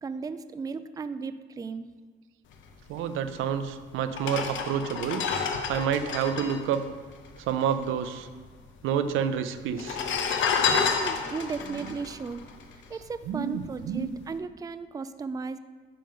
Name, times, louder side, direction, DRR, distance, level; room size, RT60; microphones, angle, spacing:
voice 1, 0.0-1.9 10.7-12.4 12.9-15.6, right 5 dB, 20° right, 12 dB, 0.4 m, -35 dB
voice 2, 2.9-5.3 5.7-6.8 7.5-8.3 8.8-10.0 11.6-12.0 13.3-14.1, right 8 dB, 90° right, 10 dB, 0.5 m, -29 dB
sound 1, 3.4-3.5 4.1-7.8 8.0-8.1 8.3-9.0 9.7-13.2 13.6-13.9, left 6 dB, 75° left, 0.9 m, -30 dB
10.0 x 3.8 x 5.7 m, 1.5 s
cardioid pair, 90°, 20 cm